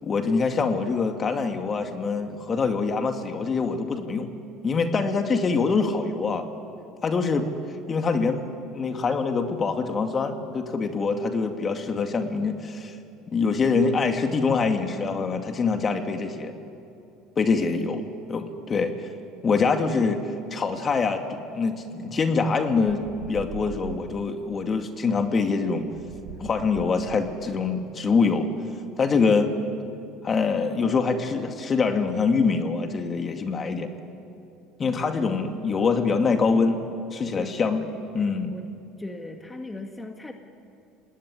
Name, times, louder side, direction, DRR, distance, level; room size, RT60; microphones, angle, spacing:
voice 1, 0.0-4.3 4.6-6.5 7.0-7.5 7.9-8.4 8.7-13.0 13.3-16.5 17.4-18.0 18.3-19.1 19.4-23.0 23.3-25.9 26.4-28.5 29.0-29.5 30.2-33.9 34.8-36.8 37.1-37.8 38.1-38.5, left 4 dB, 35° left, 5 dB, 2.3 m, -24 dB
sound 1, 22.8-24.3 25.8-27.6, right 8 dB, 75° right, 2.7 m, -41 dB
voice 2, 37.3-38.0 38.5-38.6 39.0-40.3, left 2 dB, 15° left, 4 dB, 2.1 m, -39 dB
26.0 x 19.0 x 9.9 m, 2.6 s
hypercardioid pair, 85°, 0 cm